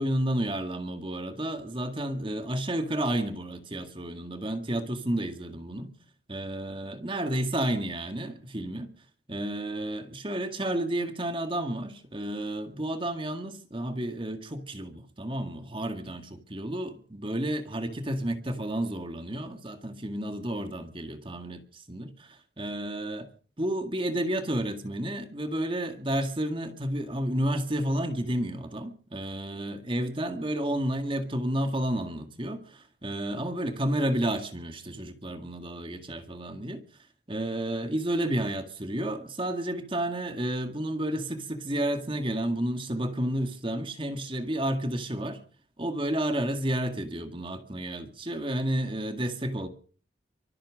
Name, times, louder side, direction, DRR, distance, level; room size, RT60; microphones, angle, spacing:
voice 1, 0.0-5.9 6.3-8.9 9.3-23.3 23.6-36.8 37.3-45.4 45.8-49.7, right 1 dB, 30° right, 1.9 m, -31 dB
24.5 x 8.9 x 6.5 m
head